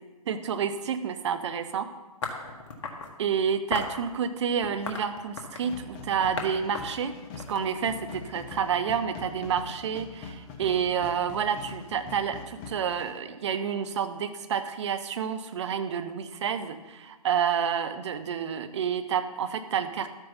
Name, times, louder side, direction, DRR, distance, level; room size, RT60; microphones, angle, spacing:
voice 1, 0.3-1.9 3.2-20.1, right 7 dB, 50° right, 9 dB, 0.9 m, -29 dB
sound 1, 2.2-3.1 3.7-4.0 4.6-5.8 6.4-6.5 6.7-8.2, left 4 dB, 50° left, 1.7 m, -35 dB
sound 2, 5.6-13.2, left 5 dB, 25° left, 1.0 m, -43 dB
12.0 x 9.0 x 4.1 m, 1.2 s
figure-of-eight pair, 130°, 19 cm